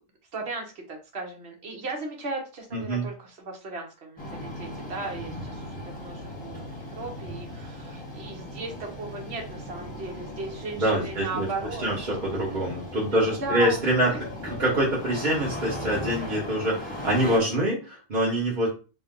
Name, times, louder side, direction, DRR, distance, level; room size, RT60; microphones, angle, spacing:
voice 1, 0.3-12.2 13.1-13.8 14.1-14.2 17.1-17.6, right 3 dB, 55° right, 1 dB, 1.3 m, -36 dB
voice 2, 2.7-3.1 10.8-11.5 11.8-14.1 14.4-18.7, right 1 dB, 40° right, -7 dB, 1.4 m, -25 dB
Engine starting, 4.2-17.4, left 1 dB, 5° left, 1.0 m, -38 dB
4.0 x 2.2 x 3.7 m, 0.33 s
omnidirectional pair, 1.3 m